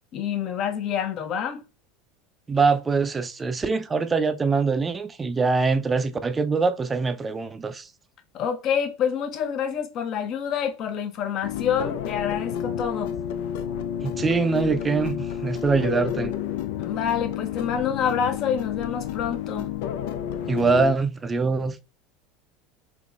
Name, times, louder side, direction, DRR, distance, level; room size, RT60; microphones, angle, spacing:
voice 1, 0.1-1.6 8.3-13.1 16.8-19.7, left 8 dB, 50° left, 0.8 m, -27 dB
voice 2, 2.5-7.9 14.0-16.3 20.5-21.8, right 4 dB, 20° right, 0.4 m, -23 dB
sound 1, 11.4-20.9, left 9 dB, 70° left, 0.4 m, -30 dB
3.7 x 2.9 x 2.4 m
hypercardioid pair, 90°, 0 cm